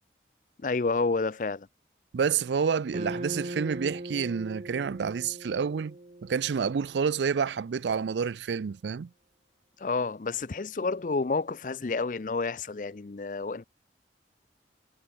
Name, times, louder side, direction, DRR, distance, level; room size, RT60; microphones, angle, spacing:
voice 1, 0.6-1.7 9.8-13.6, left 4 dB, 45° left, 0.5 m, -29 dB
voice 2, 2.1-6.0 6.2-9.1, right 6 dB, 80° right, 0.4 m, -29 dB
sound 1, 2.9-7.3, right 1 dB, 40° right, 1.1 m, -40 dB
head